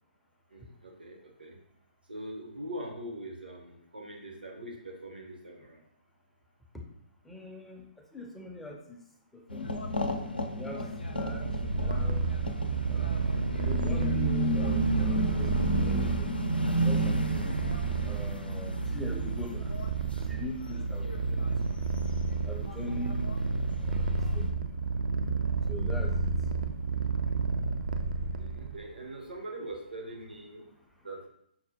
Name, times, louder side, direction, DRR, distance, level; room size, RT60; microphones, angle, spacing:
voice 1, 0.5-1.6 2.1-5.8 22.8-22.9 28.2-30.7 31.0-31.3, right 1 dB, 85° right, 0 dB, 0.9 m, -42 dB
voice 2, 7.2-9.0 9.3-9.9 10.5-11.5 11.7-12.3 12.9-13.3 13.6-16.4 16.8-17.5 18.0-19.7 20.1-21.9 22.4-23.3 23.8-24.6 25.7-26.3, left 1 dB, ahead, 0 dB, 0.4 m, -43 dB
sound 1, 9.5-20.8 21.0-21.8 22.0-24.4, equal, 90° left, 0.5 m, -33 dB
Purr, 11.2-28.8, right 4 dB, 65° right, 0.4 m, -31 dB
5.8 x 2.1 x 2.8 m, 0.74 s
figure-of-eight pair, 130°, 5 cm